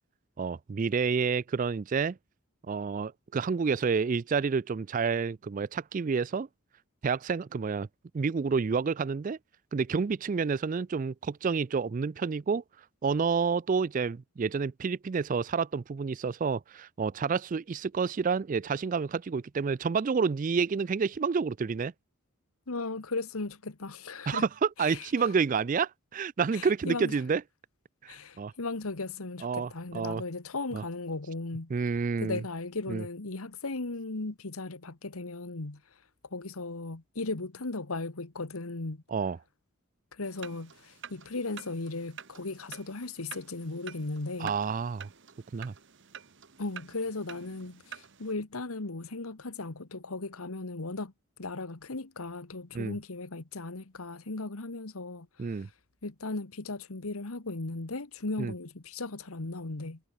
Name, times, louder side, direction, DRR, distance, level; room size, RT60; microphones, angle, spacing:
voice 1, 0.4-2.2 2.7-6.5 7.0-7.9 8.1-9.4 9.7-12.6 13.0-21.9 24.3-27.4 28.0-28.5 29.4-30.2 30.7-30.8 31.7-32.4 32.9-33.0 39.1-39.4 44.4-45.1 45.5-45.7 52.7-52.9 55.4-55.7 58.4-58.5, right 5 dB, 35° right, 0.3 m, -29 dB
voice 2, 22.7-24.4 24.8-25.3 26.5-27.2 28.1-31.7 32.0-35.8 36.3-39.0 40.1-44.5 46.6-51.1 51.4-55.7 56.0-60.0, left 3 dB, 75° left, 1.4 m, -37 dB
sound 1, 40.3-48.3, right 8 dB, 55° right, 1.3 m, -49 dB
head